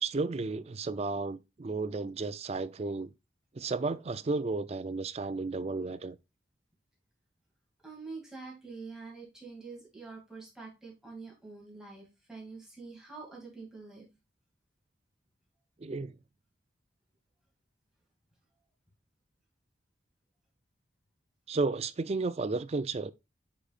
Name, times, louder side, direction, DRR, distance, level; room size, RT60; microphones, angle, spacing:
voice 1, 0.0-3.1 3.5-6.2 15.8-16.2 21.5-23.1, right 3 dB, 35° right, 0.4 m, -33 dB
voice 2, 7.8-14.1, right 4 dB, 5° right, 2.4 m, -46 dB
8.7 x 5.0 x 2.4 m
head